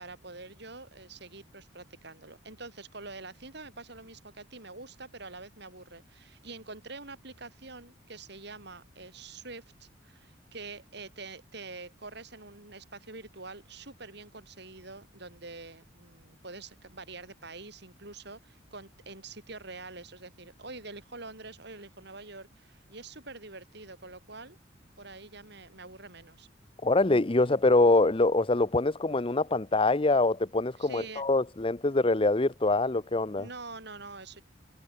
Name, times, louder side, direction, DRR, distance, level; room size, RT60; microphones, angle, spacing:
voice 1, 0.0-24.6 25.0-26.5 30.8-31.2 33.4-34.4, right 3 dB, 60° right, 6.1 m, -46 dB
voice 2, 26.8-33.5, left 2 dB, 30° left, 0.8 m, -24 dB
head